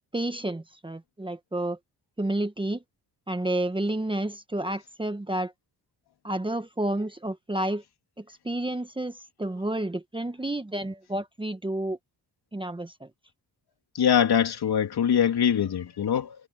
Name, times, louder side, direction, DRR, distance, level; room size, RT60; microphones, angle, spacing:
voice 1, 0.1-1.8 2.2-2.8 3.3-5.5 6.2-7.8 8.2-12.0 12.5-13.1, right 1 dB, 10° right, 1.2 m, -30 dB
voice 2, 13.9-16.4, left 8 dB, 60° left, 3.3 m, -23 dB
cardioid pair, 100°, 42 cm